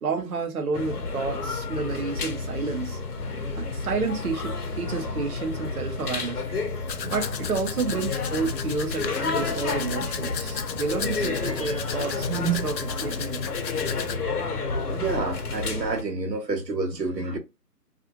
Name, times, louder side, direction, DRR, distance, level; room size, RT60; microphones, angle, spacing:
voice 1, 0.0-3.0 3.6-6.4 7.1-12.3 12.6-13.5 13.8-13.9, right 4 dB, 60° right, 0.8 m, -30 dB
sound 1, 0.7-16.0, left 4 dB, 65° left, 0.9 m, -30 dB
Domestic sounds home sounds, 6.9-14.2, left 6 dB, 90° left, 0.6 m, -35 dB
sound 2, 11.2-13.0, left 1 dB, 25° left, 0.6 m, -44 dB
voice 2, 12.3-12.7 14.9-17.4, right 4 dB, 85° right, 0.9 m, -28 dB
2.5 x 2.5 x 2.8 m
figure-of-eight pair, 150°, 49 cm